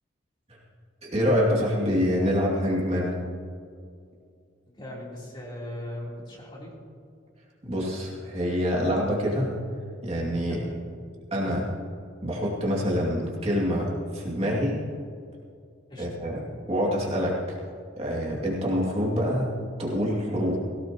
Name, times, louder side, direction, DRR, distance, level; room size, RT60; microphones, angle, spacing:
voice 1, 1.0-3.2 7.6-9.6 10.0-10.6 11.3-11.7 12.2-14.8 16.0-16.4 16.7-17.6 18.0-19.5 19.8-20.6, equal, 30° right, -4 dB, 2.5 m, -26 dB
voice 2, 4.7-6.7 10.5-10.9 15.9-16.1, left 1 dB, 25° left, -5 dB, 3.6 m, -39 dB
19.0 x 17.5 x 3.0 m, 2.3 s
head